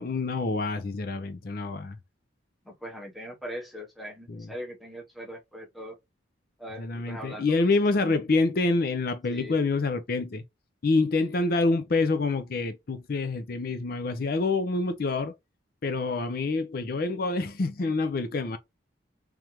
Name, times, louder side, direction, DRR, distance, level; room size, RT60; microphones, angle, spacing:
voice 1, 0.0-2.0 4.3-4.5 6.8-10.4 10.8-15.3 15.8-18.6, left 3 dB, 50° left, 0.5 m, -27 dB
voice 2, 2.7-6.0 6.6-7.5 7.9-8.1 9.3-9.6, equal, ahead, 0.9 m, -40 dB
3.6 x 3.2 x 2.9 m
head